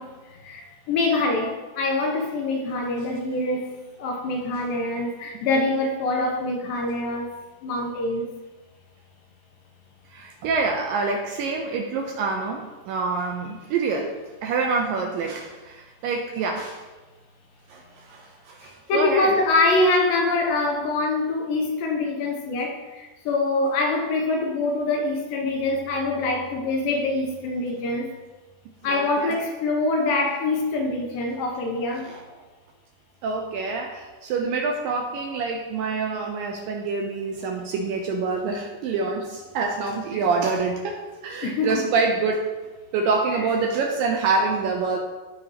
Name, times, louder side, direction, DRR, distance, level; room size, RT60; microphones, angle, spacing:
voice 1, 0.0-3.7 4.0-7.3 7.6-8.3 18.6-28.1 28.8-32.1 40.1-40.2 41.4-41.8 43.3-43.4, left 2 dB, 75° left, 2 dB, 2.3 m, -24 dB
voice 2, 10.1-14.1 14.4-16.8 17.7-19.3 28.9-29.4 32.0-32.2 33.2-42.5 42.9-45.0, right 4 dB, 80° right, 2 dB, 2.1 m, -26 dB
14.5 x 4.9 x 2.9 m, 1.2 s
omnidirectional pair, 4.6 m